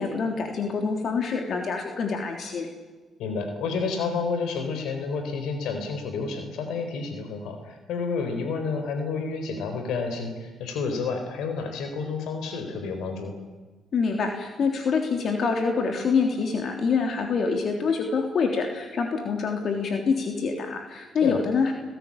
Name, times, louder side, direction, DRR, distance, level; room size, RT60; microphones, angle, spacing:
voice 1, 0.0-2.7 13.9-21.7, left 5 dB, 60° left, 3 dB, 3.4 m, -26 dB
voice 2, 3.2-13.3 21.2-21.4, left 4 dB, 80° left, 6 dB, 4.0 m, -30 dB
29.5 x 17.0 x 8.8 m, 1.3 s
supercardioid pair, 65°, 0 cm